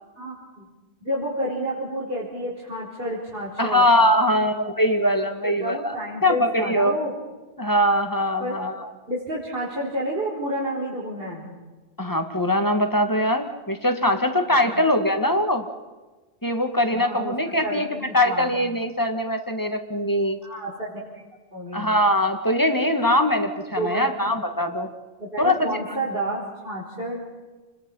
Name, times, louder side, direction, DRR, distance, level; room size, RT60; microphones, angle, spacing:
voice 1, 0.2-0.6 1.0-3.9 5.4-7.1 8.4-8.6 9.1-11.5 14.6-14.8 16.9-17.3 17.6-18.5 20.4-21.2 21.5-21.9 23.1-23.2 23.7-24.3 25.2-27.2, equal, 55° right, -5 dB, 5.2 m, -30 dB
voice 2, 3.6-6.0 6.2-6.9 7.6-8.9 12.0-15.7 16.4-17.9 18.1-20.4 21.7-24.9 25.4-25.8, left 1 dB, 20° left, 6 dB, 2.0 m, -22 dB
29.5 x 22.5 x 5.7 m, 1.2 s
omnidirectional pair, 1.1 m